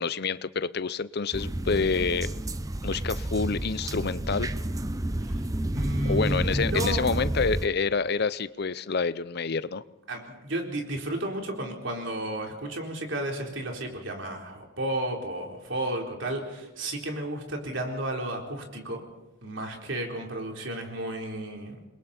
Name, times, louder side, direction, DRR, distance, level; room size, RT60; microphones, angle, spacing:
voice 1, 0.0-2.4 2.8-4.5 6.0-9.8, left 4 dB, 55° left, 0.7 m, -28 dB
sound 1, 1.3-7.7, right 1 dB, 15° right, 0.7 m, -30 dB
voice 2, 5.7-7.1 10.1-19.0 19.4-21.8, right 1 dB, 65° right, 4.0 m, -32 dB
28.5 x 22.0 x 4.4 m
head